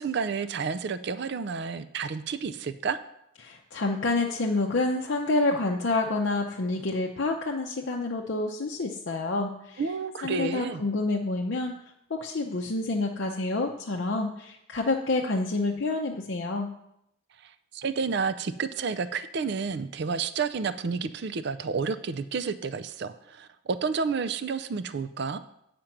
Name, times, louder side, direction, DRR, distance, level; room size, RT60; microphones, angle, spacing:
voice 1, 0.0-3.0 9.8-10.8 17.4-25.4, right 5 dB, 55° right, 12 dB, 0.4 m, -30 dB
voice 2, 3.4-9.8 10.2-11.8 12.1-16.7, left 2 dB, 55° left, 0 dB, 0.6 m, -28 dB
8.9 x 5.1 x 5.9 m, 0.79 s
head